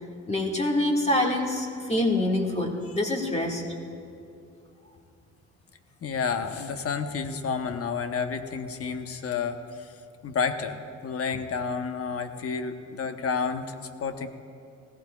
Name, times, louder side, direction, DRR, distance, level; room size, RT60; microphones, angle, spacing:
voice 1, 0.3-3.6, left 1 dB, 20° left, 0 dB, 1.9 m, -25 dB
voice 2, 6.0-9.9 10.2-10.8 11.0-14.3, left 5 dB, 50° left, 8 dB, 1.0 m, -30 dB
19.0 x 15.5 x 2.4 m, 2.5 s
cardioid pair, 90°, 30 cm